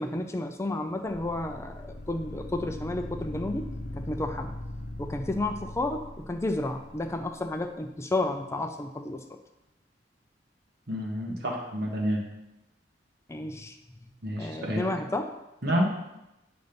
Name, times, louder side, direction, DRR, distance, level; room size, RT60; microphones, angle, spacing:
voice 1, 0.0-3.7 3.9-4.5 5.0-9.2 13.3-14.1 14.4-15.3, left 2 dB, 15° left, 5 dB, 0.4 m, -32 dB
sound 1, 1.1-7.2, left 1 dB, 50° left, 0.8 m, -40 dB
voice 2, 10.9-12.2 14.2-14.9 15.6-15.9, equal, 65° right, 0 dB, 1.6 m, -29 dB
9.2 x 3.9 x 5.2 m, 0.93 s
head